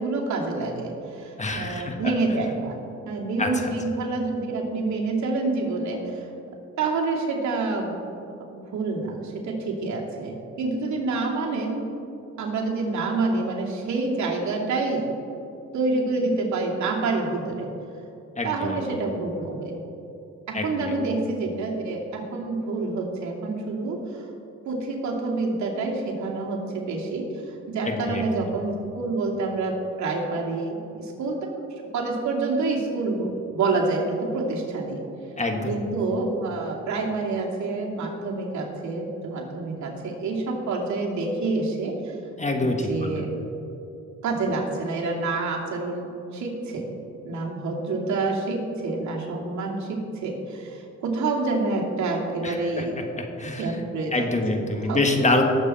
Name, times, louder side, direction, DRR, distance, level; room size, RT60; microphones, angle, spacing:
voice 1, 0.0-2.8 3.0-6.3 6.8-8.0 8.5-11.8 12.4-15.1 15.7-17.7 18.4-19.8 20.5-24.3 24.7-31.5 31.8-35.0 35.7-42.2 42.6-43.3 44.2-46.9 47.2-52.9 53.4-54.3 54.8-55.0, right 3 dB, 70° right, -2 dB, 2.5 m, -27 dB
voice 2, 1.4-2.1 3.4-3.7 18.4-18.8 20.5-21.0 27.8-28.2 35.4-35.7 42.4-43.2 52.4-52.8 53.2-53.8 54.1-55.4, left 2 dB, 25° left, 3 dB, 1.6 m, -26 dB
19.0 x 7.8 x 4.3 m, 2.7 s
cardioid pair, 90°, 30 cm